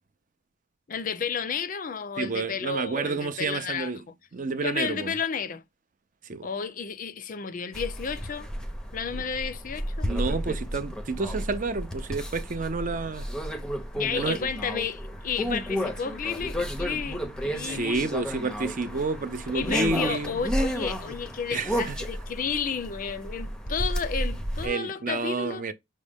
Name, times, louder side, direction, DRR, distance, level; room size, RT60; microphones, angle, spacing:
voice 1, 0.9-3.9 4.6-5.6 6.4-8.5 8.9-10.1 13.9-18.1 19.5-25.6, left 6 dB, 45° left, 0.5 m, -32 dB
voice 2, 2.2-4.0 4.3-5.1 6.2-6.5 10.0-13.3 14.1-14.4 17.6-20.4 21.5-22.0 24.6-25.7, right 3 dB, 45° right, 0.6 m, -30 dB
sound 1, 7.7-24.7, equal, 5° left, 0.6 m, -32 dB
6.2 x 2.1 x 3.4 m
head